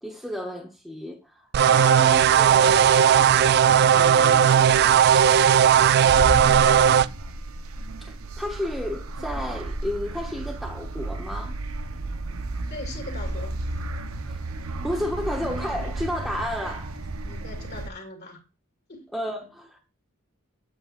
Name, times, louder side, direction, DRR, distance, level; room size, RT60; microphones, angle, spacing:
voice 1, 0.0-4.8 8.0-11.6 14.2-17.0 19.1-19.9, left 1 dB, ahead, 1.0 m, -33 dB
sound 1, 1.5-7.1, right 8 dB, 50° right, 0.3 m, -17 dB
sound 2, 4.4-17.9, right 2 dB, 85° right, 0.9 m, -33 dB
voice 2, 12.7-13.6 17.2-18.4 18.9-19.0, left 3 dB, 50° left, 2.4 m, -39 dB
8.3 x 8.2 x 2.5 m
head